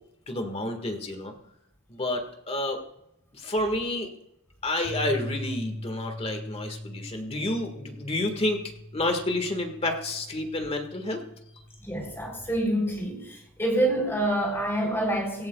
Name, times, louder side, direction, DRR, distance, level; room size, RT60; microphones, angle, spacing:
voice 1, 0.3-1.3 1.9-2.8 3.3-4.1 4.6-8.6 8.9-11.2, left 1 dB, 25° left, 5 dB, 1.6 m, -29 dB
sound 1, 4.8-13.2, equal, 75° right, 5.5 m, -41 dB
voice 2, 11.8-15.5, right 1 dB, 10° left, 1 dB, 3.4 m, -27 dB
17.5 x 16.0 x 2.3 m, 0.80 s
head